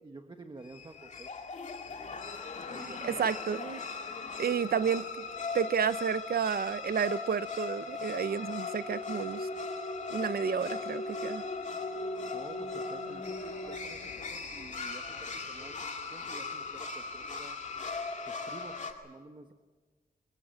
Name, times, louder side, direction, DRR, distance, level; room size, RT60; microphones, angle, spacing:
voice 1, 0.0-1.3 2.6-3.4 12.3-17.6 18.3-19.5, right 3 dB, 30° right, 5 dB, 1.2 m, -50 dB
sound 1, 0.6-18.9, left 4 dB, 50° left, 2.2 m, -38 dB
voice 2, 3.0-3.8 4.4-5.1 5.5-9.5 10.1-11.4, right 7 dB, 80° right, 14 dB, 0.8 m, -31 dB
22.5 x 22.5 x 7.7 m, 1.4 s
wide cardioid pair, 165°, 16 cm